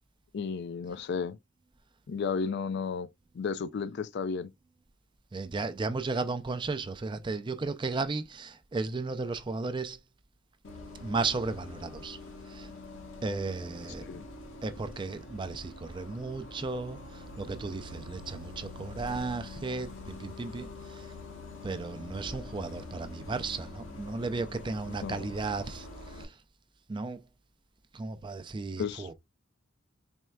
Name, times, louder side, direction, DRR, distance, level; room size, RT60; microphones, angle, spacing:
voice 1, 0.3-1.4 2.1-3.1 3.3-4.5 14.0-14.3 25.0-25.3 28.8-29.1, left 5 dB, 55° left, 0.4 m, -33 dB
voice 2, 5.3-10.0 11.0-12.2 12.5-12.7 13.2-14.0 14.6-21.0 21.6-25.9 26.2-26.3 26.9-27.2 27.9-29.1, right 3 dB, 25° right, 0.4 m, -34 dB
Bus, 10.6-26.2, left 2 dB, 75° left, 1.2 m, -45 dB
4.4 x 3.2 x 2.2 m
head